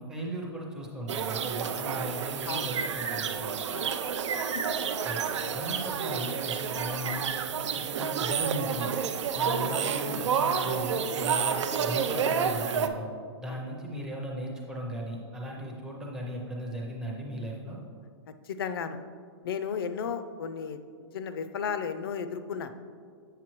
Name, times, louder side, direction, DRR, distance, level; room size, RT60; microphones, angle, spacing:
voice 1, 0.0-3.5 5.0-5.2 5.5-7.3 7.7-8.9 9.3-13.0 13.4-17.8, equal, 5° right, -3 dB, 0.5 m, -37 dB
sound 1, 1.1-12.9, right 7 dB, 90° right, 0.5 m, -30 dB
voice 2, 3.7-4.1 4.5-4.6 5.3-5.6 13.5-13.6 18.4-19.0 19.4-20.8 21.1-22.7, left 6 dB, 55° left, 10 dB, 0.4 m, -34 dB
7.5 x 6.6 x 3.0 m, 2.1 s
hypercardioid pair, 175°, 15 cm